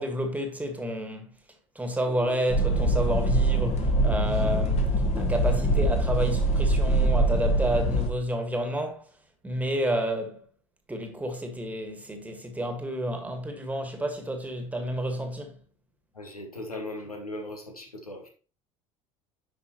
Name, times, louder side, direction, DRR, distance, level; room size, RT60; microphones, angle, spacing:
voice 1, 0.0-1.4 1.8-9.1 9.4-10.5 10.9-15.6, right 1 dB, 10° right, 1.7 m, -30 dB
sound 1, 2.5-8.1, right 1 dB, 35° left, 1.6 m, -23 dB
voice 2, 16.2-18.3, left 1 dB, 85° left, 1.5 m, -38 dB
10.0 x 5.3 x 3.0 m
figure-of-eight pair, 70°, 19 cm